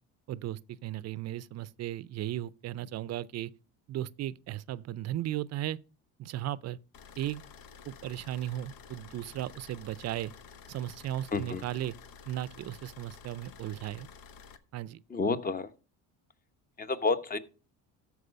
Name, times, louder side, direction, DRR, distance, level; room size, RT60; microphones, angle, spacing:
voice 1, 0.3-3.5 3.9-5.8 6.2-6.8 7.2-7.4 7.9-10.3 10.7-11.9 12.3-14.1 14.7-15.0, right 13 dB, 50° right, 0.5 m, -36 dB
sound 1, 6.9-14.6, left 6 dB, 80° left, 1.1 m, -51 dB
voice 2, 11.3-11.6 15.1-15.7 16.8-17.4, left 3 dB, 25° left, 1.0 m, -30 dB
13.0 x 4.8 x 5.2 m
cardioid pair, 100°, 34 cm